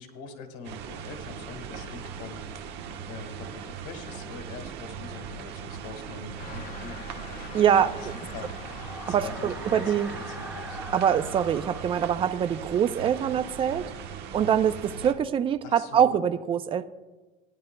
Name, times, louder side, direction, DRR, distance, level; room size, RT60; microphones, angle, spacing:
voice 1, 0.0-2.4 3.1-7.6 8.3-9.9 10.3-10.8 15.6-16.2, left 5 dB, 70° left, 6 dB, 1.6 m, -43 dB
sound 1, 0.6-15.1, right 6 dB, 60° right, 1.1 m, -39 dB
sound 2, 6.0-14.4, right 1 dB, 5° right, 1.6 m, -45 dB
sound 3, 6.4-11.9, left 7 dB, 40° left, 0.9 m, -46 dB
voice 2, 7.5-7.9 9.1-10.1 10.9-13.9 14.3-16.8, right 9 dB, 25° right, 11 dB, 0.4 m, -24 dB
16.0 x 10.5 x 2.2 m, 1.2 s
cardioid pair, 130°, 20 cm